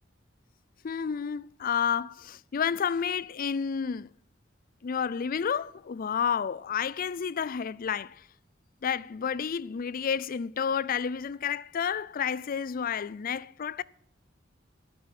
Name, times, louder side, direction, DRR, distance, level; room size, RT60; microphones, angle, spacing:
voice 1, 0.8-4.1 4.8-8.2 8.8-13.8, left 7 dB, 45° left, 0.4 m, -30 dB
12.0 x 10.5 x 6.0 m
head